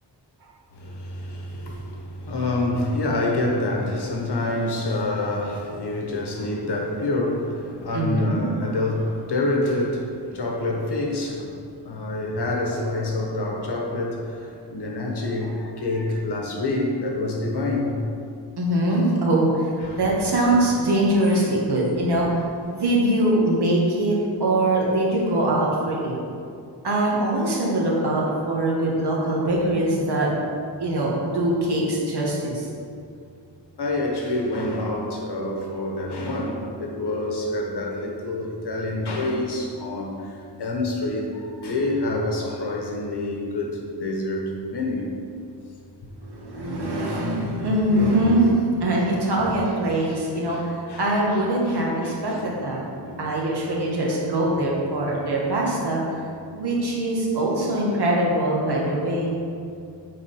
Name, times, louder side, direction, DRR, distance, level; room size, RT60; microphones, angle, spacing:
voice 1, 0.7-11.6 11.8-18.3 19.8-20.0 21.3-21.5 33.8-45.1 50.0-50.2 50.5-51.0 51.7-52.4 53.0-53.2 54.4-54.6 56.1-56.3, left 2 dB, 70° left, 0 dB, 1.2 m, -27 dB
voice 2, 7.9-8.4 18.6-19.7 19.9-22.3 22.7-26.2 26.8-30.3 30.8-32.7 46.2-52.8 53.2-56.0 56.5-59.4, right 1 dB, 65° right, -4 dB, 1.6 m, -22 dB
7.4 x 4.0 x 5.4 m, 2.4 s
wide cardioid pair, 175°, 42 cm